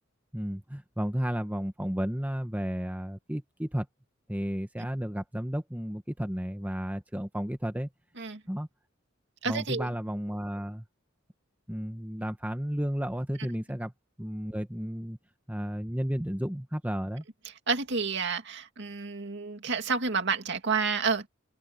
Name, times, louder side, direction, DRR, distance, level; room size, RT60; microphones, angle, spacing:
voice 1, 0.3-3.9 4.3-7.9 8.5-8.7 9.5-10.8 11.7-13.9 14.2-15.2 15.5-17.2, equal, 10° right, 1.3 m, -33 dB
voice 2, 9.4-9.9 17.7-21.3, right 5 dB, 60° right, 2.3 m, -29 dB
head